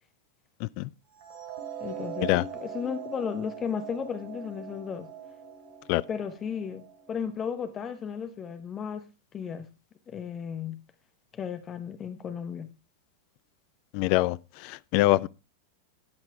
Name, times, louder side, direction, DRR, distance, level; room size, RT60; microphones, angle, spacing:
sound 1, 1.2-7.4, right 6 dB, 45° right, 3.2 m, -41 dB
voice 1, 1.8-2.3 2.6-5.1 6.1-9.7 10.1-10.8 11.3-12.7, left 7 dB, 25° left, 1.1 m, -34 dB
voice 2, 13.9-15.3, left 18 dB, 45° left, 0.4 m, -25 dB
13.0 x 10.0 x 3.4 m
figure-of-eight pair, 90°, 0 cm